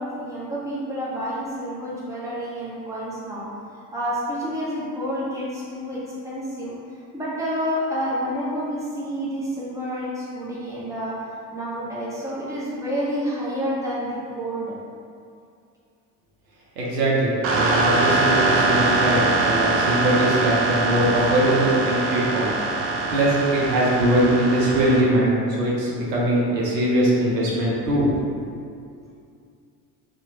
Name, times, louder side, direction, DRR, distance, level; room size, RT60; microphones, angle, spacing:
voice 1, 0.0-3.5 3.9-6.8 7.1-11.2 11.5-14.8, equal, 5° right, -7 dB, 0.8 m, -29 dB
voice 2, 16.8-22.5 23.1-28.2, right 1 dB, 85° right, -5 dB, 0.7 m, -21 dB
sound 1, 17.4-25.0, right 3 dB, 30° right, 0.4 m, -23 dB
2.8 x 2.4 x 2.7 m, 2.4 s
hypercardioid pair, 60°, 48 cm